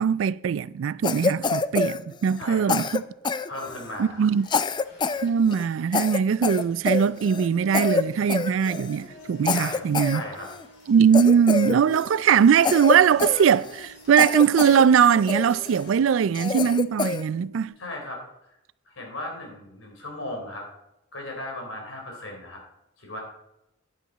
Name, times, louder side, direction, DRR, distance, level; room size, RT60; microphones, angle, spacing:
voice 1, 0.0-3.0 4.0-4.5 5.2-10.2 10.9-17.7, right 7 dB, 75° right, 0.3 m, -21 dB
Cough, 1.0-2.4 2.7-4.0 4.5-5.3 5.5-5.6 5.9-7.5 7.7-8.0 8.3-9.0 9.4-10.6 11.1-12.2 12.6-13.9 14.2-14.8 15.3-15.8 16.3-17.2, left 4 dB, 25° left, 0.3 m, -26 dB
voice 2, 2.4-2.8 3.5-4.3 9.5-10.5 17.8-18.2 18.9-20.7 21.1-22.6 23.0-23.2, left 1 dB, 90° left, 3.9 m, -36 dB
sound 1, 3.6-16.0, left 2 dB, 60° left, 4.1 m, -51 dB
sound 2, 7.5-17.7, right 1 dB, 45° left, 3.2 m, -47 dB
10.0 x 9.2 x 4.1 m
head